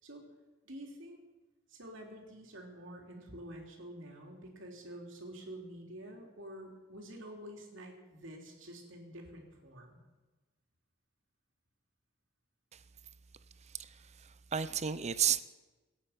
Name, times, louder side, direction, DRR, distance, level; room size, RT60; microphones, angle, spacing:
voice 1, 0.6-1.2 1.7-10.0, right 1 dB, 65° right, 1 dB, 3.3 m, -48 dB
voice 2, 13.6-15.4, right 8 dB, 35° right, 14 dB, 0.6 m, -33 dB
25.0 x 8.8 x 5.9 m, 1.2 s
head